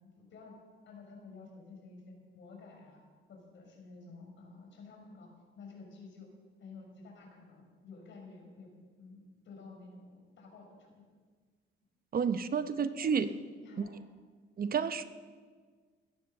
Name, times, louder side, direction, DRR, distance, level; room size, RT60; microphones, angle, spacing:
voice 1, 0.1-0.5 0.9-3.0 3.3-5.3 5.6-6.3 6.6-8.7 9.0-11.0 12.4-13.9 14.7-15.1, left 3 dB, 70° left, 0 dB, 6.0 m, -52 dB
voice 2, 12.1-13.3 13.8-13.9 14.6-15.1, right 6 dB, 50° right, 11 dB, 0.9 m, -30 dB
16.5 x 13.0 x 6.7 m, 1.5 s
cardioid pair, 90°, 20 cm